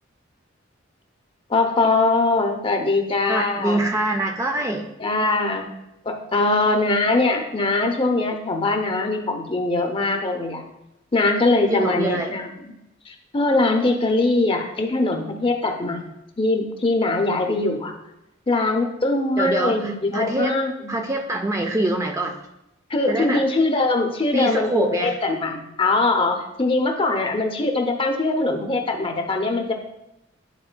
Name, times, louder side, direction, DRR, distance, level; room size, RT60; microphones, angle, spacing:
voice 1, 1.5-3.8 5.0-5.6 6.0-10.6 11.1-12.7 13.1-16.0 16.4-17.9 18.5-21.0 22.9-29.8, left 2 dB, 25° left, 4 dB, 0.7 m, -22 dB
voice 2, 3.3-4.9 11.7-12.3 19.4-20.6 20.9-22.4 23.1-23.4 24.3-25.2, right 1 dB, 15° right, 3 dB, 0.4 m, -24 dB
10.0 x 4.7 x 2.2 m, 0.88 s
head